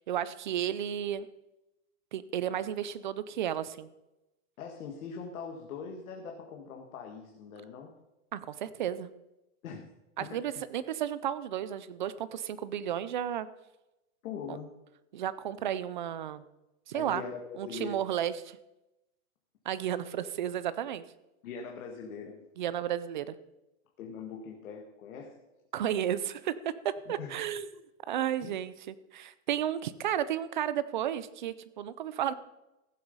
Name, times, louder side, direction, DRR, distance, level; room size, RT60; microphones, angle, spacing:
voice 1, 0.1-1.3 2.1-3.9 8.3-9.1 10.2-13.5 14.5-14.6 15.1-16.4 16.9-17.2 17.6-18.6 19.7-21.0 22.6-23.4 25.7-27.7 28.1-32.3, right 10 dB, 35° right, 15 dB, 0.4 m, -33 dB
voice 2, 4.6-8.0 9.6-9.9 10.2-10.6 14.2-14.8 16.9-18.0 21.4-22.5 24.0-25.5 27.1-27.6 28.4-28.6, left 5 dB, 70° left, 2 dB, 1.8 m, -42 dB
15.0 x 7.9 x 5.4 m, 0.96 s
supercardioid pair, 175°, 43 cm